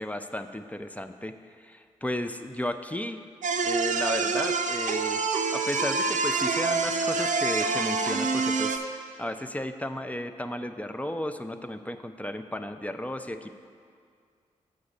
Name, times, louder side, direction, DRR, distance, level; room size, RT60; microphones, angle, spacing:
voice 1, 0.0-1.4 1.6-3.2 3.6-5.2 5.5-8.8 9.2-13.5, left 1 dB, 10° left, 8 dB, 0.5 m, -34 dB
sound 1, 3.4-8.8, right 4 dB, 65° right, 0.6 m, -26 dB
6.7 x 5.0 x 6.5 m, 2.1 s
supercardioid pair, 40°, 14 cm